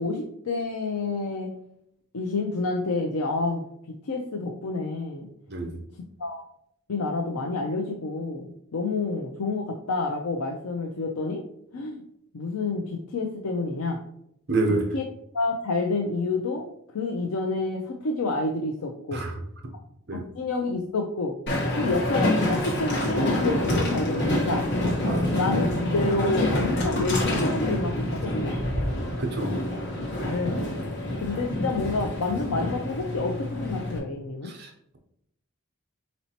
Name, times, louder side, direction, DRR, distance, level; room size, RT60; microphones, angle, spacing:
voice 1, 0.0-1.5 2.1-5.3 6.2-6.4 6.9-8.4 8.7-11.4 11.7-12.0 12.3-14.0 14.7-15.1 15.3-19.2 20.1-21.3 21.7-24.7 25.3-28.5 30.3-34.5, left 3 dB, 80° left, 2 dB, 0.5 m, -29 dB
voice 2, 5.5-5.8 14.5-14.9 19.1-19.3 20.1-20.2 25.0-25.3 29.2-29.6 34.4-35.0, right 2 dB, 45° right, 3 dB, 0.7 m, -28 dB
Train, 21.5-34.0, left 1 dB, 50° left, 1.0 m, -27 dB
4.3 x 4.1 x 2.8 m, 0.74 s
head